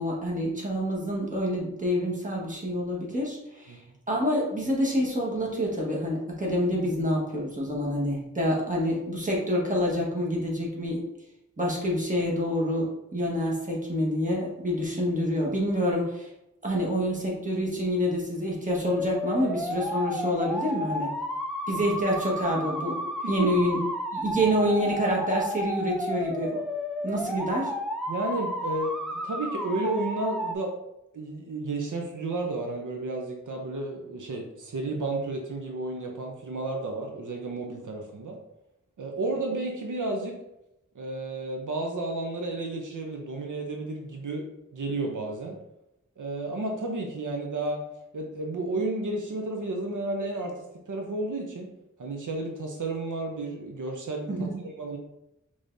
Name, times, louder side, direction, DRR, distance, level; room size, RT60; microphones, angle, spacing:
voice 1, 0.0-3.8 4.1-11.0 11.6-16.3 16.6-21.1 21.7-23.0 23.3-23.8 24.1-26.6 27.0-27.7 54.3-54.6, equal, 25° right, -3 dB, 1.4 m, -27 dB
sound 1, 18.8-30.6, equal, ahead, 0.5 m, -32 dB
voice 2, 28.1-30.7 31.1-38.4 39.0-40.4 40.9-44.5 44.7-45.6 46.2-47.8 48.1-50.6 50.9-51.7 52.0-54.3 54.8-55.0, right 2 dB, 80° right, 2 dB, 0.6 m, -32 dB
5.1 x 3.4 x 2.6 m, 0.86 s
wide cardioid pair, 70°, 30 cm